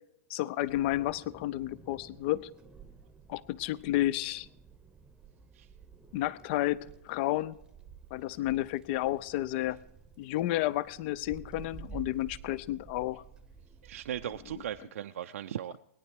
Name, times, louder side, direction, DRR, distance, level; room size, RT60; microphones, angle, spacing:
voice 1, 0.3-2.5 3.3-4.5 6.1-7.6 8.1-9.8 10.2-13.2, left 15 dB, 40° left, 20 dB, 0.5 m, -31 dB
Wind, 0.6-14.8, right 6 dB, 10° right, 0.9 m, -52 dB
voice 2, 13.8-15.8, right 10 dB, 60° right, 8 dB, 0.5 m, -38 dB
21.0 x 10.0 x 4.7 m, 0.80 s
figure-of-eight pair, 105°, 8 cm